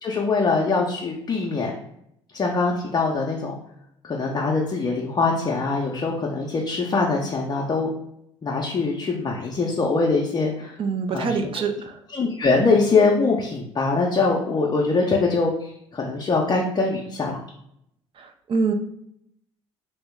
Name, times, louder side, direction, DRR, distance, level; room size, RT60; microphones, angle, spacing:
voice 1, 0.0-1.7 2.3-3.6 4.0-7.9 8.4-10.8 11.1-11.5 12.1-17.4, left 3 dB, 25° left, -2 dB, 0.6 m, -23 dB
voice 2, 10.8-12.0 18.2-18.7, right 4 dB, 35° right, 6 dB, 0.5 m, -25 dB
2.9 x 2.7 x 3.4 m, 0.75 s
figure-of-eight pair, 60°, 16 cm